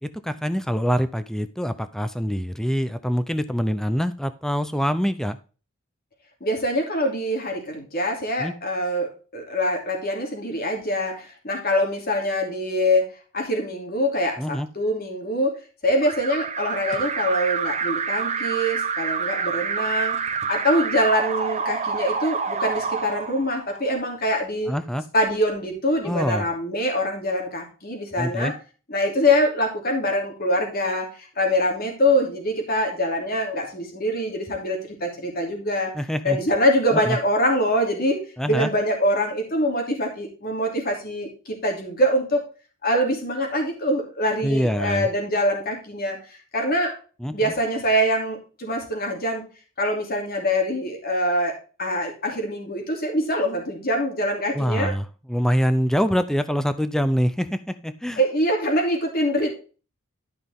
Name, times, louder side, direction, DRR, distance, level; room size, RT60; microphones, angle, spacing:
voice 1, 0.0-5.4 8.4-8.5 14.4-14.7 24.7-25.0 26.0-26.5 28.2-28.5 35.9-36.4 36.9-37.2 38.4-38.7 44.4-45.1 47.2-47.5 54.5-58.2, equal, ahead, 11 dB, 0.6 m, -25 dB
voice 2, 6.4-15.5 15.8-20.2 20.5-24.7 25.1-28.5 28.9-35.9 36.2-38.2 38.5-42.4 42.8-46.9 47.3-49.4 49.8-54.9 58.2-59.5, equal, 45° left, 1 dB, 2.9 m, -24 dB
Alarm, 16.0-23.9, right 5 dB, 30° right, 0.9 m, -27 dB
12.5 x 5.8 x 3.6 m, 0.35 s
head